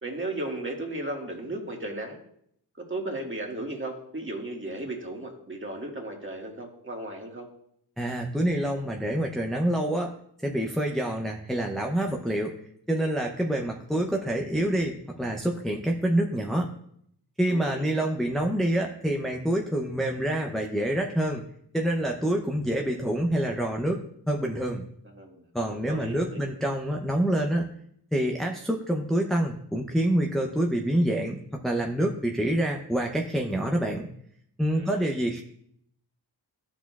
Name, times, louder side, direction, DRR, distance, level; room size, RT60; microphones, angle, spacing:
voice 1, 0.0-2.2 2.9-7.5 17.5-18.1 25.2-25.4 25.7-26.4 34.7-35.1, right 2 dB, 30° right, 0 dB, 1.8 m, -35 dB
voice 2, 8.0-10.1 10.4-12.5 12.9-16.7 17.4-21.4 21.7-24.8 25.5-27.7 28.1-34.1 34.6-35.4, right 1 dB, ahead, 0 dB, 0.7 m, -27 dB
12.5 x 6.2 x 2.4 m, 0.69 s
wide cardioid pair, 80°, 42 cm